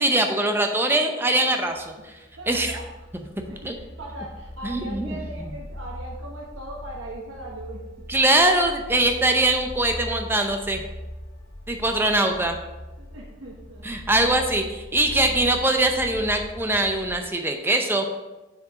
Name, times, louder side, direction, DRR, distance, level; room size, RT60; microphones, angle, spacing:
voice 1, 0.0-2.1 2.5-2.7 3.6-3.7 4.6-5.5 8.1-10.8 11.7-12.6 13.8-18.2, right 1 dB, 10° right, 4 dB, 0.6 m, -22 dB
sound 1, 1.7-17.3, equal, 85° left, 1.4 m, -40 dB
voice 2, 2.4-2.9 3.5-7.8 13.0-13.9, right 1 dB, 90° right, -3 dB, 1.1 m, -39 dB
6.6 x 4.8 x 4.7 m, 1.1 s
head